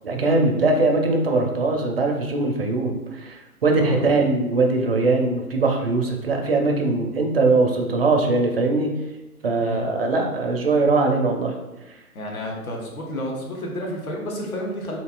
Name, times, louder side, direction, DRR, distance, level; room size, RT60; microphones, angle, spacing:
voice 1, 0.0-8.9 9.4-11.6 11.9-12.0, right 3 dB, 45° right, 2 dB, 0.4 m, -21 dB
voice 2, 12.1-15.0, left 1 dB, 65° left, -1 dB, 1.0 m, -31 dB
3.6 x 2.7 x 2.2 m, 1.0 s
figure-of-eight pair, 135°, 45 cm